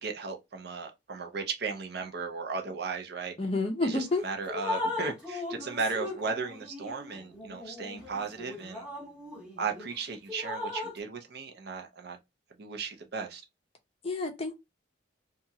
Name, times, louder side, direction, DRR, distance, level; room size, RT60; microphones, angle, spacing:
voice 1, 0.0-3.3 3.8-8.8 9.6-12.2 12.6-13.4, right 4 dB, 55° right, 0.6 m, -36 dB
voice 2, 3.4-4.3 14.0-14.5, left 2 dB, 30° left, 0.5 m, -29 dB
Drip, 3.9-4.1 4.5-9.9 10.3-11.0, left 2 dB, 5° right, 0.8 m, -38 dB
2.9 x 2.3 x 2.7 m
head